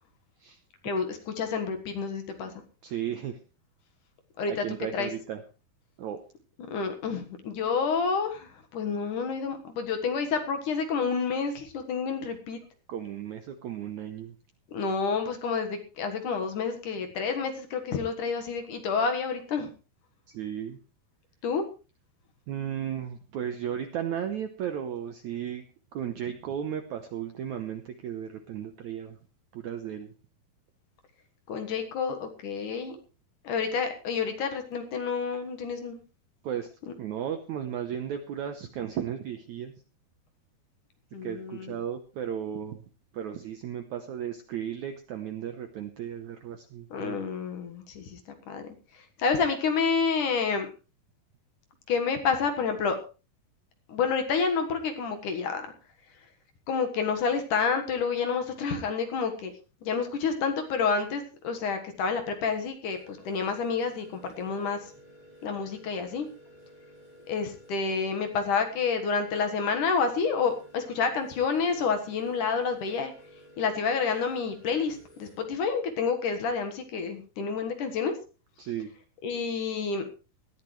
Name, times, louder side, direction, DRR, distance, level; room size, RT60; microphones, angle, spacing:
voice 1, 0.8-2.5 4.4-4.6 4.9-5.1 6.6-12.6 14.7-19.7 21.4-21.6 31.5-33.0 33.4-36.0 41.1-41.8 46.9-48.2 48.5-48.6 49.2-50.7 51.9-53.0 53.9-55.7 56.7-59.5 59.8-64.8 65.4-66.3 67.3-73.1 73.6-78.1 79.2-80.1, left 5 dB, 60° left, 6 dB, 2.7 m, -29 dB
voice 2, 2.8-3.4 4.5-5.4 6.0-6.2 12.2-12.3 12.9-14.3 20.3-20.8 22.5-25.6 25.9-29.2 29.5-30.1 32.9-33.0 36.4-36.7 37.0-39.7 41.2-42.8 43.1-47.2 78.6-78.9, right 9 dB, 75° right, 7 dB, 1.8 m, -35 dB
sound 1, 62.9-75.4, equal, 75° left, 7.2 m, -53 dB
19.5 x 13.5 x 3.2 m, 0.33 s
omnidirectional pair, 4.5 m